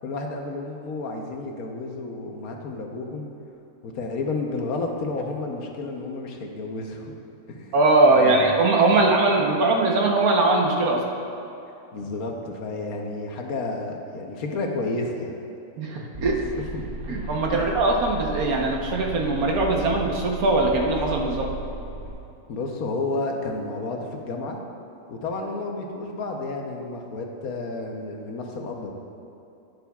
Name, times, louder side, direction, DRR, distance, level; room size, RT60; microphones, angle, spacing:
voice 1, 0.0-3.3 3.8-7.1 7.5-7.7 8.1-8.5 8.9-9.0 11.9-15.3 16.2-17.2 17.5-17.7 22.5-24.6 25.1-28.9, left 3 dB, 85° left, 2 dB, 1.4 m, -31 dB
voice 2, 7.7-11.0 15.8-16.5 17.1-21.5, right 2 dB, 85° right, 0 dB, 1.5 m, -21 dB
sound 1, 16.1-22.1, right 1 dB, 25° right, 2.2 m, -35 dB
11.0 x 9.6 x 2.3 m, 2.8 s
omnidirectional pair, 1.5 m